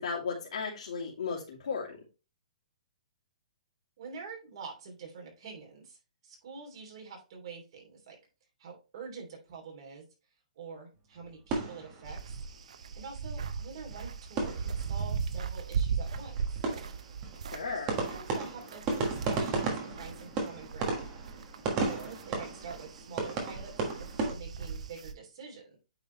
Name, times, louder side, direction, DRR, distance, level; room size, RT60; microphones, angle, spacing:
voice 1, 0.0-2.0 17.5-17.9, left 5 dB, 65° left, -5 dB, 2.3 m, -35 dB
voice 2, 4.0-6.0 6.2-8.2 8.6-10.0 10.5-12.3 13.0-16.4 17.6-21.1 21.8-25.8, right 5 dB, 40° right, 0 dB, 2.9 m, -46 dB
sound 1, 11.2-12.6 12.9-13.0 13.3-13.4 13.7-15.2 15.4-15.6 15.8-24.3, right 3 dB, 20° right, 1.3 m, -35 dB
sound 2, 12.0-20.2 20.6-25.1, right 6 dB, 60° right, 0.7 m, -38 dB
9.0 x 3.9 x 3.1 m, 0.30 s
hypercardioid pair, 175°, 4 cm